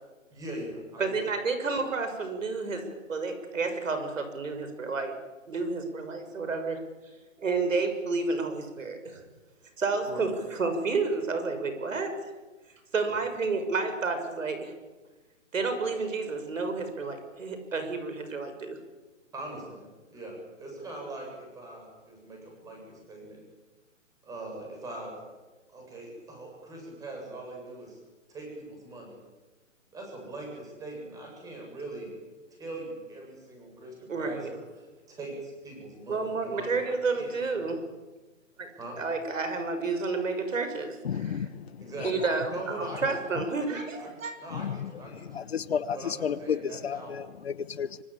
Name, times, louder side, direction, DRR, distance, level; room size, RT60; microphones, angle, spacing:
voice 1, 0.3-1.2 10.0-10.2 13.1-13.2 19.3-23.4 24.2-25.1 25.7-28.0 28.3-29.1 29.9-32.1 32.6-37.8 38.8-39.0 41.8-42.1 42.5-43.2 44.0-44.1 44.3-45.3 45.9-47.3, right 2 dB, 10° right, 1 dB, 8.0 m, -41 dB
voice 2, 1.0-5.1 5.5-6.8 7.4-9.2 9.8-12.1 12.9-14.7 15.5-18.8 34.1-34.5 36.1-37.8 38.6-38.7 39.0-41.5 42.0-44.3, right 4 dB, 75° right, 8 dB, 6.6 m, -30 dB
voice 3, 41.0-41.7 44.5-44.9 45.3-48.0, left 7 dB, 50° left, 15 dB, 1.2 m, -32 dB
25.5 x 24.5 x 8.9 m, 1.2 s
hypercardioid pair, 160°, 39 cm